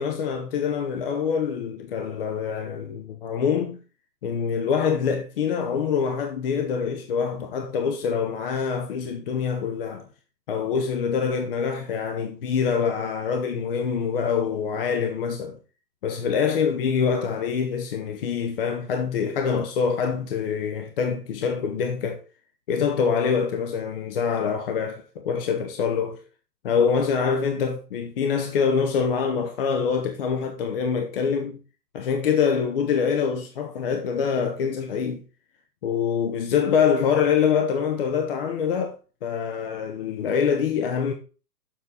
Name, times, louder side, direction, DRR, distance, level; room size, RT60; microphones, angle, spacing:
voice 1, 0.0-3.8 4.2-10.1 10.5-15.6 16.0-22.2 22.7-26.2 26.6-31.6 31.9-35.2 35.8-39.0 39.2-41.1, left 6 dB, 35° left, 0.8 m, -25 dB
7.3 x 5.4 x 4.1 m
hypercardioid pair, 135°, 50 cm